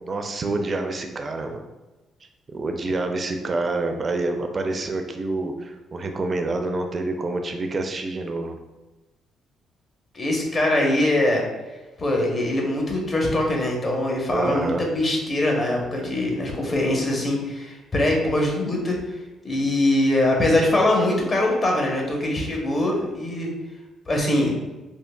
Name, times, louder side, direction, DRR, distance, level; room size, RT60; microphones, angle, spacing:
voice 1, 0.1-1.6 2.5-8.6 14.3-14.8, right 2 dB, 40° right, 5 dB, 0.4 m, -27 dB
voice 2, 10.1-11.4 12.0-19.0 19.4-23.5 24.1-24.5, left 1 dB, 35° left, 0 dB, 0.8 m, -22 dB
3.7 x 2.4 x 2.2 m, 1.1 s
cardioid pair, 90°, 0 cm